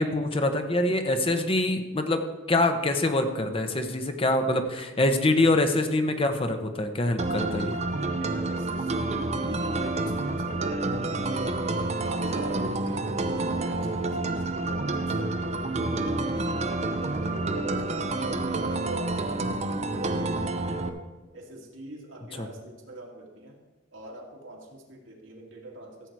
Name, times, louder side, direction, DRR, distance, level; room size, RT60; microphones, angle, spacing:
voice 1, 0.0-7.8 22.4-22.5, left 2 dB, 30° left, 7 dB, 0.9 m, -25 dB
sound 1, 7.2-20.9, right 2 dB, 35° right, 0.7 m, -29 dB
voice 2, 7.9-21.0 21.3-23.6 23.9-26.1, right 1 dB, 80° right, 0 dB, 2.3 m, -42 dB
14.5 x 7.9 x 4.7 m, 1.2 s
head